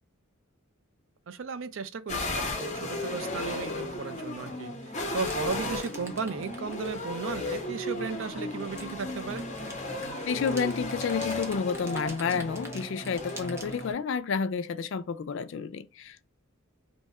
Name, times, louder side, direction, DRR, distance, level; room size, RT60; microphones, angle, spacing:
voice 1, 1.3-9.4, right 5 dB, 65° right, 0.4 m, -35 dB
sound 1, 2.1-13.9, left 2 dB, 35° left, 0.8 m, -35 dB
sound 2, 5.1-7.1 8.6-13.9, right 1 dB, 10° right, 0.6 m, -46 dB
voice 2, 10.2-16.3, left 6 dB, 60° left, 0.3 m, -30 dB
2.7 x 2.3 x 4.1 m
head